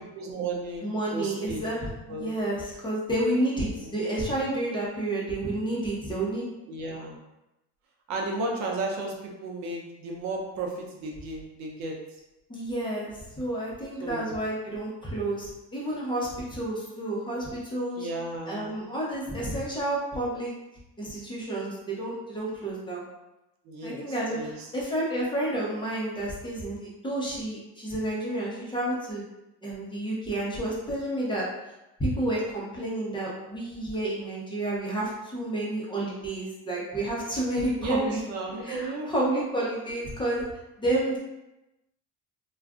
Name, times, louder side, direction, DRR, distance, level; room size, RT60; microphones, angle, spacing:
voice 1, 0.1-1.6 2.1-2.3 3.8-3.9 6.7-7.2 8.1-11.9 14.0-14.3 18.0-18.8 23.7-24.7 37.8-39.5, right 3 dB, 65° right, 0 dB, 0.7 m, -33 dB
voice 2, 0.8-6.5 12.5-18.1 18.5-20.5 21.0-23.0 23.8-29.2 29.6-31.5 32.0-38.2 38.6-40.4 40.8-41.2, right 1 dB, 15° left, -5 dB, 0.9 m, -30 dB
2.4 x 2.3 x 3.6 m, 0.95 s
cardioid pair, 125°, 30 cm